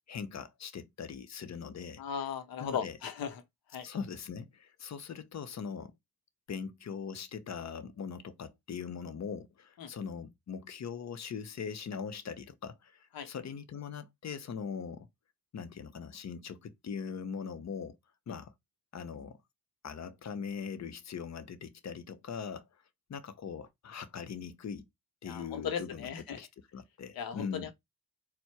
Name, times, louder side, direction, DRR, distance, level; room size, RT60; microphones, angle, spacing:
voice 1, 0.0-2.0 2.6-3.0 3.8-5.9 6.5-15.1 15.5-18.0 18.3-18.5 18.9-19.4 19.8-22.7 23.1-24.9 25.2-27.7, left 6 dB, 50° left, 0.8 m, -41 dB
voice 2, 2.0-3.4 3.7-3.9 9.8-9.9 13.1-13.3 25.2-26.4 27.1-27.7, left 7 dB, 85° left, 0.8 m, -37 dB
4.4 x 2.2 x 4.5 m
cardioid pair, 65°, 35 cm